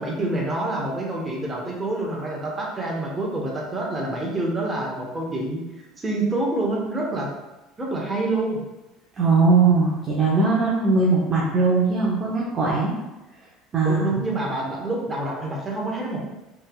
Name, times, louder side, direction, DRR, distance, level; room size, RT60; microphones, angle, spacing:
voice 1, 0.0-5.6 6.0-7.3 7.8-8.6 13.8-16.2, right 2 dB, 20° right, -3 dB, 1.4 m, -27 dB
voice 2, 9.2-13.0 13.7-14.2, right 4 dB, 40° right, -5 dB, 0.9 m, -20 dB
4.2 x 3.4 x 2.4 m, 1.0 s
hypercardioid pair, 70°, 0 cm